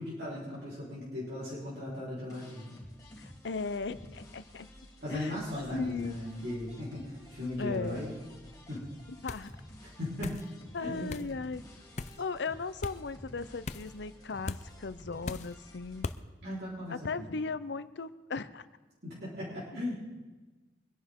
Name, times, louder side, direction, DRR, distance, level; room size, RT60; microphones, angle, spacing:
voice 1, 0.0-2.8 5.0-8.2 8.7-8.8 10.0-10.4 10.8-11.2 16.4-17.2 19.0-20.0, left 1 dB, 65° right, -8 dB, 4.1 m, -37 dB
sound 1, 2.3-16.1, left 1 dB, 20° left, 3.0 m, -52 dB
voice 2, 3.2-4.7 5.1-5.4 5.7-6.2 7.6-8.0 9.1-9.5 10.7-11.6 12.2-16.1 16.9-18.7, left 4 dB, 80° left, 14 dB, 0.6 m, -37 dB
sound 2, 9.3-9.5 10.2-10.5 11.1-11.3 12.0-12.2 12.8-13.0 13.7-13.9 14.5-14.6 15.3-15.5 16.0-16.2, left 3 dB, 40° left, 0.5 m, -38 dB
23.5 x 11.0 x 3.7 m, 1.2 s
head